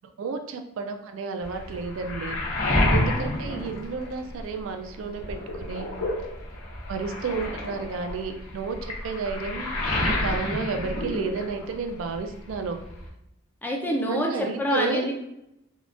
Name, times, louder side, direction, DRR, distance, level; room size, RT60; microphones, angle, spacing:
voice 1, 0.2-2.4 2.9-5.9 6.9-9.7 10.0-12.8 14.1-15.1, right 4 dB, 65° right, 6 dB, 0.3 m, -32 dB
Waves surf, 1.4-4.6 5.0-11.9 12.1-13.1, left 1 dB, 85° left, 0.8 m, -29 dB
voice 2, 13.6-15.1, equal, 10° left, -1 dB, 0.4 m, -26 dB
3.5 x 2.3 x 2.4 m, 0.83 s
head